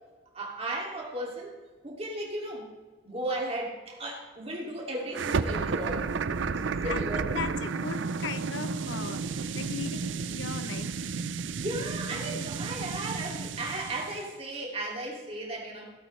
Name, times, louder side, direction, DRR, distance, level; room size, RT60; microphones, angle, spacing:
voice 1, 0.3-1.5 1.8-2.7 3.0-6.1 6.8-7.4 11.6-15.9, right 1 dB, 30° right, -1 dB, 2.5 m, -35 dB
sound 1, 5.1-14.3, right 5 dB, 85° right, 0.5 m, -32 dB
voice 2, 6.4-11.1, left 5 dB, 90° left, 11 dB, 0.8 m, -38 dB
17.0 x 8.4 x 3.2 m, 1.4 s
head